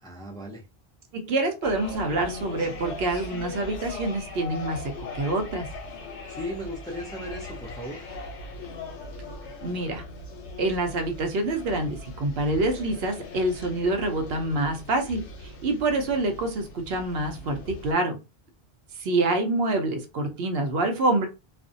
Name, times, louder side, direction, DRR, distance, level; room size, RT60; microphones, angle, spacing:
voice 1, 0.0-0.6 6.3-8.1, equal, 5° left, 0.3 m, -36 dB
voice 2, 1.1-5.7 9.6-10.0 10.6-18.2 19.0-21.3, right 2 dB, 70° right, 0.8 m, -26 dB
sound 1, 1.6-17.9, left 2 dB, 85° left, 0.9 m, -39 dB
2.4 x 2.1 x 2.5 m
omnidirectional pair, 1.1 m